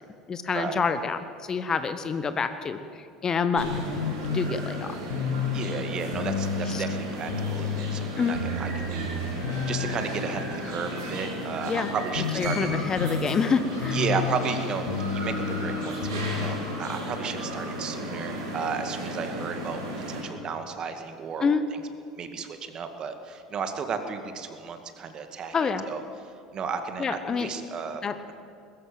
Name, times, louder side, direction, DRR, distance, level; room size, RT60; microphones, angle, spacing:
voice 1, 0.3-2.8 3.2-4.0 4.3-4.9 6.7-6.8 8.2-8.4 11.7-11.9 12.3-14.0 21.4-21.7 25.5-25.9 27.0-27.5 28.0-28.1, left 5 dB, 30° left, 11 dB, 1.1 m, -27 dB
sound 1, 3.6-20.2, right 1 dB, 70° right, 6.9 m, -35 dB
sound 2, 3.7-16.5, left 6 dB, 70° left, 2.0 m, -32 dB
voice 2, 5.5-9.2 9.7-12.8 13.9-19.8 20.1-21.8 22.2-25.5 25.9-26.0 26.5-28.3, right 5 dB, 35° right, 7 dB, 2.1 m, -33 dB
21.0 x 14.0 x 9.2 m, 2.4 s
figure-of-eight pair, 70°, 2 cm